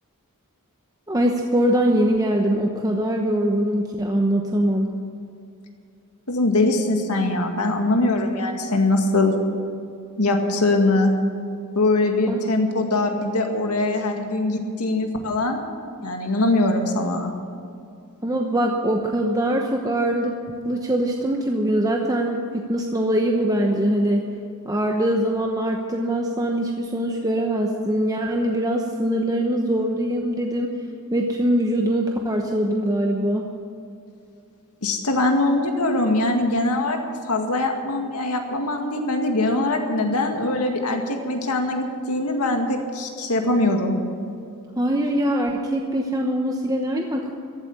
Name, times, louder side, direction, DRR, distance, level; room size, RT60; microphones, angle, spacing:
voice 1, 1.1-4.9 12.3-12.4 18.2-20.4 20.6-24.2 24.6-30.7 31.1-33.5 44.8-47.3, right 1 dB, 15° right, 1 dB, 0.9 m, -22 dB
voice 2, 6.3-9.4 10.2-11.1 11.8-15.6 16.0-17.3 34.8-37.0 37.3-44.0, left 2 dB, 80° left, 3 dB, 2.0 m, -22 dB
14.5 x 8.5 x 9.9 m, 2.5 s
head